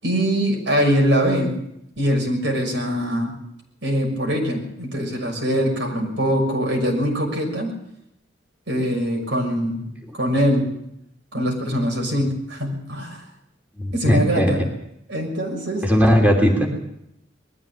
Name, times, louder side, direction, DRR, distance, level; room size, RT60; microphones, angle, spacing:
voice 1, 0.0-1.6 2.0-3.3 3.8-7.7 8.7-9.9 10.1-10.7 11.3-13.2 13.9-14.6 15.1-15.8, equal, 70° right, 2 dB, 6.3 m, -22 dB
voice 2, 13.8-14.5 15.8-16.7, equal, 10° right, 0 dB, 3.0 m, -17 dB
20.5 x 14.5 x 8.8 m, 0.79 s
head